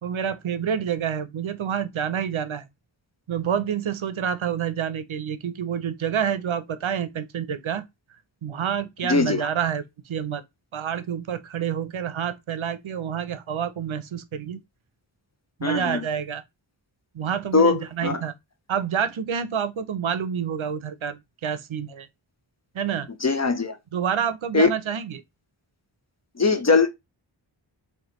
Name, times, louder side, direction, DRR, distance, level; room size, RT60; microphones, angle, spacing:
voice 1, 0.0-2.7 3.3-7.8 8.4-10.4 10.7-14.6 15.6-16.4 17.1-18.3 18.7-22.1 22.7-23.1 23.9-25.2, right 8 dB, 80° right, 0.6 m, -28 dB
voice 2, 9.1-9.4 15.6-16.0 17.5-18.2 23.2-23.8 24.5-24.7 26.4-26.9, left 4 dB, 35° left, 0.7 m, -20 dB
4.8 x 2.3 x 3.0 m
wide cardioid pair, 50°, 47 cm